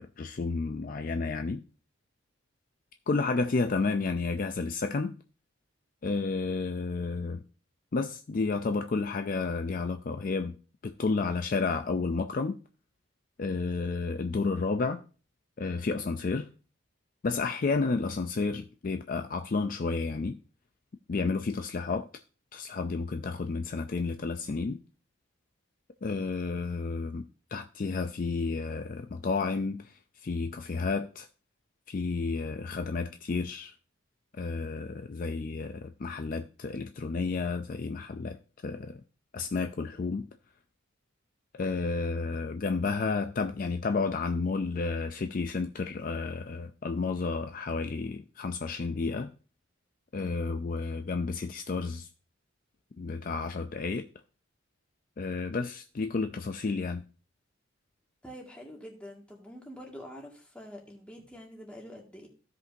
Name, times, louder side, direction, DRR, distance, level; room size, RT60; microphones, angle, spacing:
voice 1, 0.0-1.6 3.1-5.1 6.0-7.4 7.9-10.6 10.8-12.6 13.4-15.0 15.6-16.5 17.2-20.4 21.1-22.1 22.5-24.8 26.0-27.2 27.5-31.3 31.9-33.7 34.3-38.4 38.6-39.0 39.3-40.3 41.5-49.3 50.1-52.1 53.0-54.1 55.2-57.0, left 4 dB, 40° left, 0.4 m, -31 dB
voice 2, 58.2-62.3, equal, 5° left, 1.9 m, -46 dB
15.5 x 5.2 x 2.7 m
head